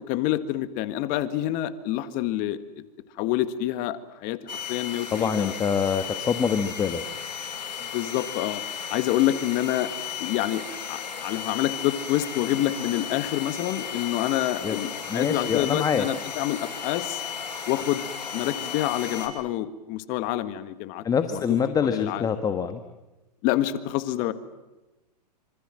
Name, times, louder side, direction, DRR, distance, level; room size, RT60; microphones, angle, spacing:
voice 1, 0.0-2.6 3.2-5.5 7.9-8.6 8.9-9.9 10.2-17.2 17.7-21.0 21.3-21.6 21.8-22.3 23.4-24.3, left 13 dB, 40° left, 12 dB, 1.7 m, -27 dB
sound 1, 4.5-19.3, left 7 dB, 85° left, 6.0 m, -35 dB
voice 2, 5.1-7.0 14.6-14.8 15.1-16.1 21.0-22.8, left 7 dB, 15° left, 8 dB, 1.4 m, -25 dB
26.5 x 25.5 x 7.6 m, 1.0 s
hypercardioid pair, 120°, 21 cm